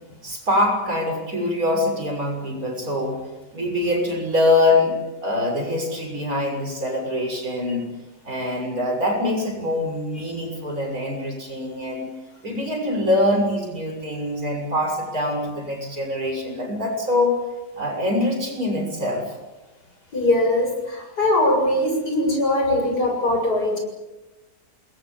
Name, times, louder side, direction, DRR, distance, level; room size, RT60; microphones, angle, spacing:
voice 1, 0.2-3.2 3.5-7.9 8.3-12.1 12.4-17.4 17.8-19.3, left 1 dB, 50° right, 2 dB, 7.0 m, -24 dB
voice 2, 20.1-23.8, left 1 dB, 60° left, 1 dB, 7.7 m, -21 dB
28.5 x 21.0 x 7.4 m, 1.1 s
omnidirectional pair, 1.9 m